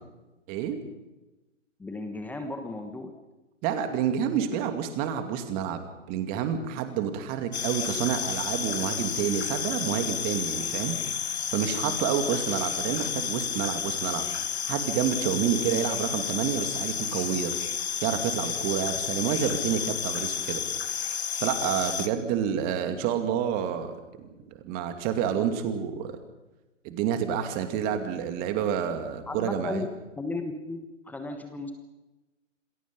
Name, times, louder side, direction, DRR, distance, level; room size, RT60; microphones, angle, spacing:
voice 1, 1.8-3.1 29.3-29.9 30.2-31.7, left 2 dB, 5° left, 6 dB, 1.2 m, -35 dB
voice 2, 3.6-5.8 6.1-11.0 11.2-14.2 14.7-17.5 18.0-20.6 20.9-21.1 21.4-26.2 26.8-29.8, right 8 dB, 25° right, 8 dB, 2.5 m, -29 dB
sound 1, 7.5-22.1, left 7 dB, 55° left, 2.0 m, -31 dB
27.5 x 21.5 x 5.5 m, 1.1 s
figure-of-eight pair, 135°, 38 cm